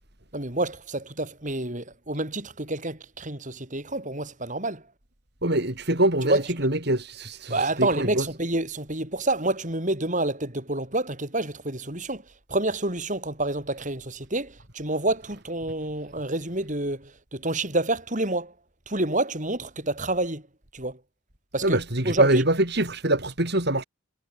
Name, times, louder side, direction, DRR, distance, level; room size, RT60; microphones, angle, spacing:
voice 1, 0.3-4.8 6.2-6.4 7.5-12.2 12.5-18.5 18.9-20.4 20.7-21.0 21.5-22.4, right 2 dB, 40° right, 7.4 m, -28 dB
voice 2, 5.4-8.2 21.6-23.8, right 1 dB, 55° right, 6.0 m, -24 dB
head